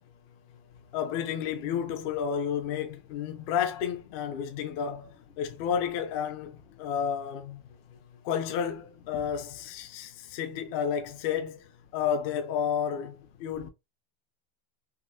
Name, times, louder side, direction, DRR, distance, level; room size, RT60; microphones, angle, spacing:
voice 1, 0.0-1.0 3.3-3.5 7.6-8.3 9.9-10.4, left 7 dB, 75° left, 0.8 m, -57 dB
voice 2, 0.9-7.6 8.2-13.7, left 8 dB, 40° left, 0.4 m, -31 dB
3.5 x 2.1 x 2.7 m
supercardioid pair, 165°, 30 cm